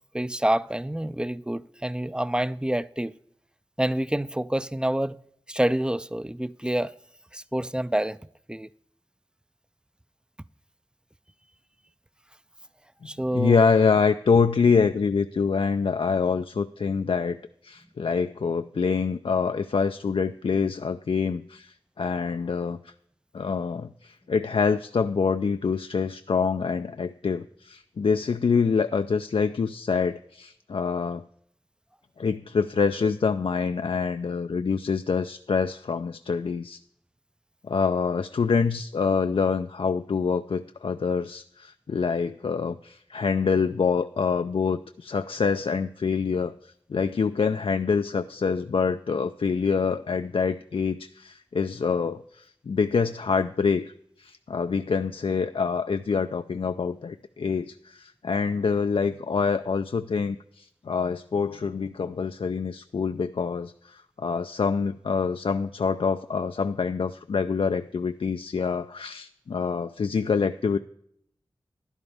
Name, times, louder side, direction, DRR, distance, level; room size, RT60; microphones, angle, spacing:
voice 1, 0.1-3.1 3.8-5.2 5.5-6.9 7.3-8.2 8.5-8.7 13.1-13.6, right 1 dB, 10° right, 0.3 m, -27 dB
voice 2, 13.3-17.4 17.6-22.9 23.3-31.2 32.2-36.8 37.6-53.9 54.2-70.8, left 5 dB, 70° left, 0.4 m, -26 dB
11.5 x 11.0 x 3.4 m
wide cardioid pair, 50°, 10 cm